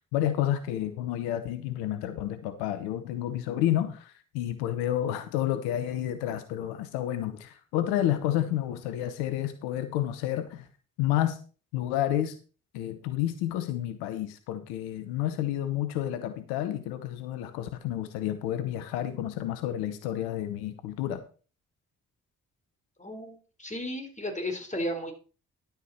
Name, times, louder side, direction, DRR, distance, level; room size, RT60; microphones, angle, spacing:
voice 1, 0.1-10.7 11.0-11.4 11.7-12.3 12.7-21.2, left 12 dB, 85° left, 0.9 m, -30 dB
voice 2, 23.0-25.1, left 1 dB, 20° left, 4.2 m, -34 dB
11.0 x 9.1 x 4.3 m
hypercardioid pair, 40°, 38 cm